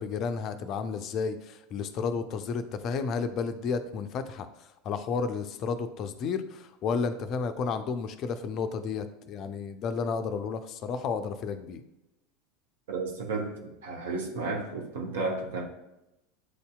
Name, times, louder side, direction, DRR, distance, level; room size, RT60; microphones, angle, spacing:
voice 1, 0.0-4.5 4.8-11.8, left 5 dB, 45° left, 10 dB, 0.4 m, -32 dB
voice 2, 12.9-15.6, right 3 dB, 70° right, 1 dB, 0.9 m, -33 dB
7.9 x 2.7 x 2.2 m, 0.90 s
figure-of-eight pair, 80°, 0 cm